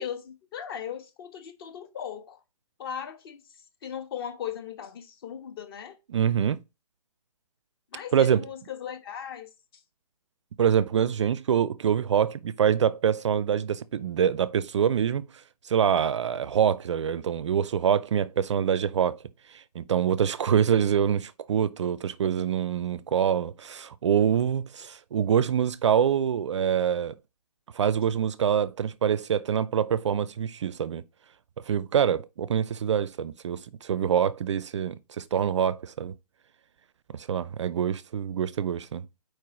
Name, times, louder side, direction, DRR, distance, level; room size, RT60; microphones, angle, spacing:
voice 1, 0.0-2.4 2.8-3.4 3.8-6.0 7.9-9.5, left 8 dB, 35° left, 1.2 m, -38 dB
voice 2, 6.1-6.6 8.1-8.5 10.6-15.3 15.6-19.2 19.5-27.1 27.7-31.0 31.7-36.1 37.1-39.0, right 8 dB, 50° right, 0.4 m, -25 dB
4.6 x 4.6 x 4.7 m
hypercardioid pair, 150°, 20 cm